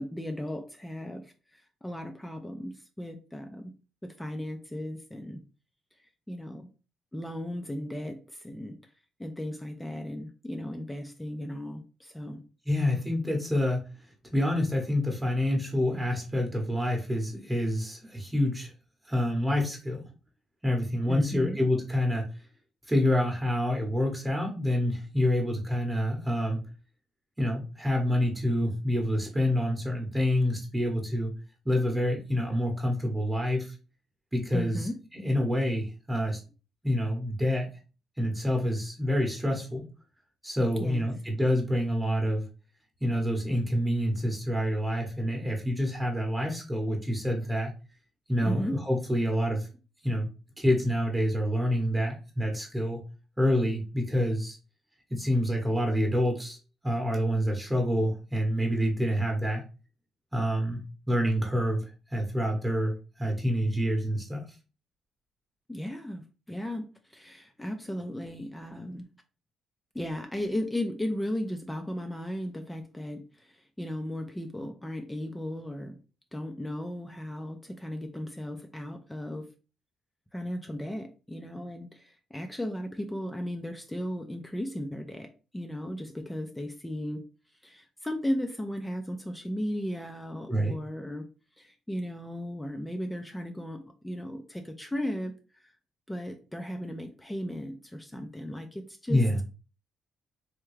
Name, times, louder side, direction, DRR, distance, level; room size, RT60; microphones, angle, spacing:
voice 1, 0.0-3.7 4.0-5.4 6.3-6.7 7.1-8.8 9.2-12.4 21.1-21.6 34.5-35.0 40.8-41.1 48.4-48.8 65.7-69.1 69.9-76.0 76.3-79.5 80.3-87.2 87.6-91.3 91.6-95.3 95.6-95.7 96.1-99.2, left 1 dB, 10° left, 5 dB, 0.4 m, -36 dB
voice 2, 12.7-13.8 14.3-18.7 19.0-20.0 20.6-22.2 22.9-26.6 27.4-31.3 31.6-33.7 34.3-36.4 36.8-37.7 38.2-39.8 40.4-42.4 43.0-47.7 48.3-49.7 50.0-50.3 50.6-53.0 53.4-54.6 55.1-56.6 56.8-59.6 60.3-60.8 61.1-64.4 90.5-90.7 99.1-99.4, equal, 10° right, 1 dB, 0.9 m, -27 dB
3.4 x 2.2 x 3.1 m, 0.34 s
cardioid pair, 90°, 0 cm